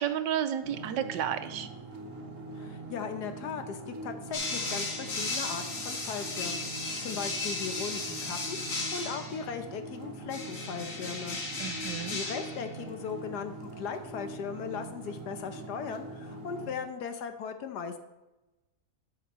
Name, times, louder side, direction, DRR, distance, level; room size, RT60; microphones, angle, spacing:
voice 1, 0.0-1.7 11.6-12.2, right 9 dB, 80° right, 10 dB, 1.3 m, -32 dB
sound 1, 0.6-16.7, right 2 dB, 45° right, 1.7 m, -43 dB
voice 2, 2.6-11.4 12.1-17.9, left 6 dB, 70° left, 8 dB, 1.4 m, -38 dB
sound 2, 4.3-9.4 10.3-12.7, left 3 dB, 50° left, 1.8 m, -35 dB
13.0 x 5.7 x 4.2 m, 1.0 s
omnidirectional pair, 1.9 m